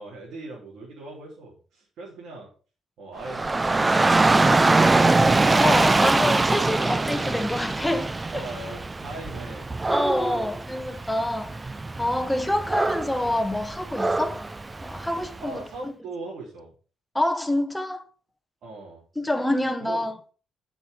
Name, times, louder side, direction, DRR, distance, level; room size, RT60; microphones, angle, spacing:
voice 1, 0.0-2.5 3.0-3.5 8.3-9.7 12.3-12.5 15.4-16.7 18.6-19.0 19.8-20.1, right 2 dB, 70° right, 3.7 m, -40 dB
Dog / Rain, 3.2-15.4, right 3 dB, 20° right, 0.5 m, -23 dB
voice 2, 5.6-8.5 9.9-11.7 12.0-14.5 14.8-15.9 17.1-18.1 19.2-20.2, left 1 dB, 10° left, 1.2 m, -27 dB
7.2 x 6.2 x 5.5 m
cardioid pair, 90°, 0 cm